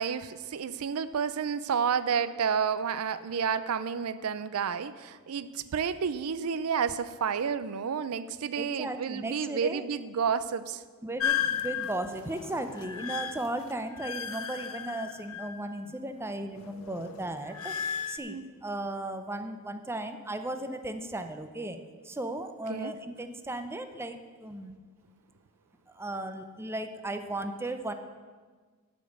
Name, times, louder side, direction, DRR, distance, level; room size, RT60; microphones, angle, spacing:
voice 1, 0.0-10.8 18.3-18.4 22.7-22.9, right 6 dB, 80° right, 14 dB, 0.5 m, -30 dB
voice 2, 8.6-9.8 11.0-17.8 18.1-21.8 22.0-24.8 26.0-27.9, right 1 dB, 10° right, 8 dB, 0.6 m, -36 dB
sound 1, 11.2-15.9 16.2-18.2, left 8 dB, 70° left, 0.6 m, -35 dB
11.0 x 5.3 x 8.0 m, 1.5 s
head